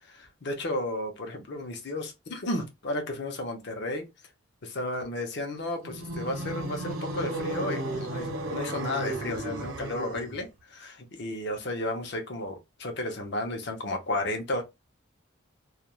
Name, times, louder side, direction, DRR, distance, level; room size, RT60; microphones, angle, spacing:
voice 1, 0.1-4.1 4.6-14.6, left 1 dB, 55° left, 0.7 m, -33 dB
sound 1, 5.8-10.4, right 1 dB, 85° right, 0.8 m, -34 dB
2.3 x 2.3 x 3.0 m
head